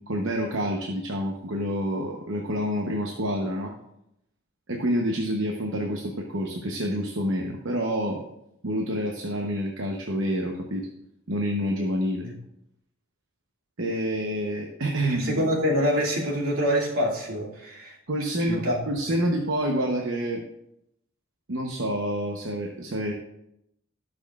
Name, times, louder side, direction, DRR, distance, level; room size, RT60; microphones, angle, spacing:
voice 1, 0.0-3.7 4.7-8.2 8.6-10.9 11.3-12.3 13.8-15.4 18.1-20.4 21.5-23.1, equal, 60° right, 1 dB, 0.9 m, -28 dB
voice 2, 15.0-18.0 18.4-18.8, equal, 80° right, -3 dB, 2.5 m, -26 dB
18.0 x 6.2 x 2.4 m, 0.80 s
head